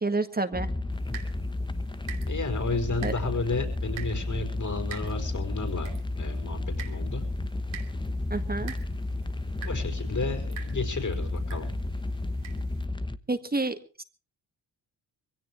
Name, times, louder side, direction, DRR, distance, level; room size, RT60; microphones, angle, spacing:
voice 1, 0.0-0.7 3.0-3.1 8.3-8.8 13.3-14.0, right 3 dB, 20° right, 8 dB, 1.8 m, -29 dB
sound 1, 0.5-13.2, left 2 dB, 10° left, 1.0 m, -32 dB
sound 2, 0.9-12.9, right 9 dB, 75° right, 2.9 m, -48 dB
voice 2, 2.3-7.2 9.6-11.8, left 3 dB, 40° left, 7 dB, 5.1 m, -32 dB
22.5 x 17.0 x 3.2 m, 0.35 s
supercardioid pair, 60°, 47 cm